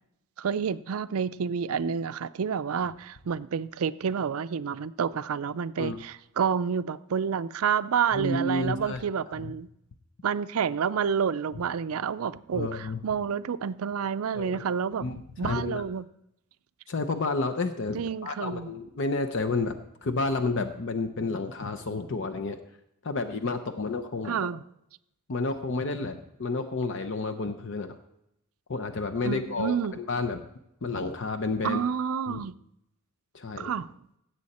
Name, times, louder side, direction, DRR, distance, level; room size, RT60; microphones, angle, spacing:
voice 1, 0.4-9.7 10.2-15.0 15.4-16.0 17.9-18.7 24.2-24.6 29.2-29.9 31.6-32.5 33.6-33.9, right 7 dB, 75° right, 0.4 m, -29 dB
voice 2, 8.1-9.0 9.3-9.5 12.5-13.0 14.3-14.6 15.0-15.8 16.9-22.6 23.0-24.4 25.3-28.0 28.7-30.4 30.8-31.8 32.3-32.4 33.3-33.7, left 3 dB, 60° left, 0.7 m, -30 dB
17.0 x 7.7 x 4.2 m
head